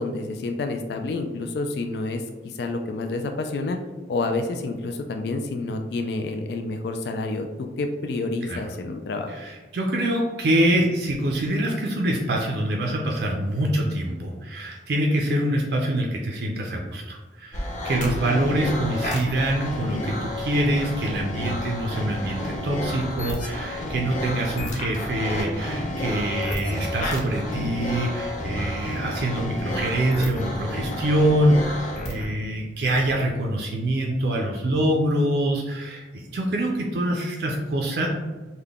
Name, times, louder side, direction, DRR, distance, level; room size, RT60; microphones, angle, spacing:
voice 1, 0.0-3.8 4.1-9.3, left 3 dB, 65° left, 5 dB, 0.3 m, -29 dB
voice 2, 9.3-38.1, right 1 dB, 65° right, 0 dB, 0.5 m, -25 dB
sound 1, 17.5-32.3, left 1 dB, 45° left, 0.7 m, -30 dB
3.6 x 2.2 x 3.5 m, 1.3 s
head